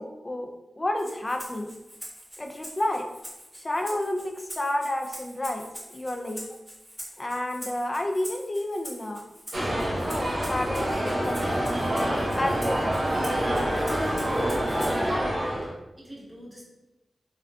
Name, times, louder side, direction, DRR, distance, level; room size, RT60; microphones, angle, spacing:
voice 1, 0.0-1.7 2.4-3.1 3.5-6.5 7.2-9.2 9.7-11.7 12.3-13.2, left 1 dB, 35° left, 4 dB, 0.4 m, -31 dB
Rattle (instrument), 1.0-15.1, equal, 5° left, 1.4 m, -44 dB
sound 1, 9.5-15.7, equal, 50° right, 0.8 m, -27 dB
sound 2, 10.7-15.7, right 1 dB, 65° left, 0.8 m, -37 dB
voice 2, 14.9-16.6, equal, 20° right, -6 dB, 1.4 m, -44 dB
3.5 x 2.3 x 2.3 m, 0.99 s
cardioid pair, 45°, 0 cm